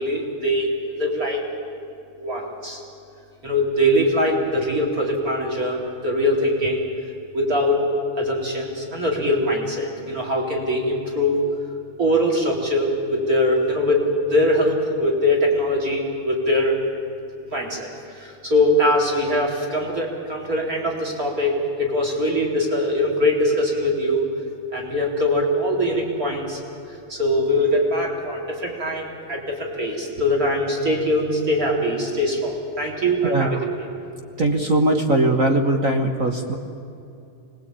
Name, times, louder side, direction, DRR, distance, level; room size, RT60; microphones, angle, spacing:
voice 1, 0.0-1.4 2.2-2.8 3.4-6.9 7.3-7.9 8.2-11.4 12.0-16.8 17.5-24.3 24.7-26.6 26.9-33.6, left 1 dB, 30° right, -1 dB, 4.3 m, -22 dB
voice 2, 33.2-33.6 34.4-36.5, right 1 dB, 45° right, 3 dB, 1.0 m, -20 dB
26.0 x 21.0 x 8.9 m, 2.6 s
omnidirectional pair, 3.4 m